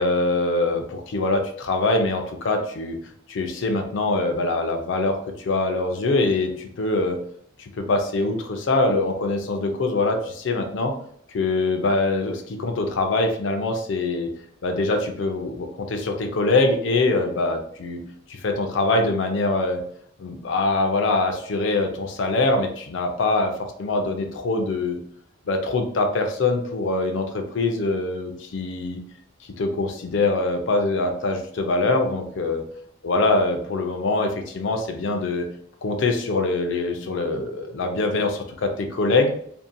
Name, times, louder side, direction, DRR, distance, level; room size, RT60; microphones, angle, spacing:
voice 1, 0.0-3.0 3.3-7.2 7.6-10.9 11.3-14.3 14.6-18.0 18.3-19.8 20.2-23.5 23.8-25.0 25.5-29.0 29.6-32.6 33.0-35.5 35.8-39.3, left 2 dB, 65° left, 5 dB, 0.4 m, -23 dB
2.6 x 2.1 x 2.5 m, 0.65 s
head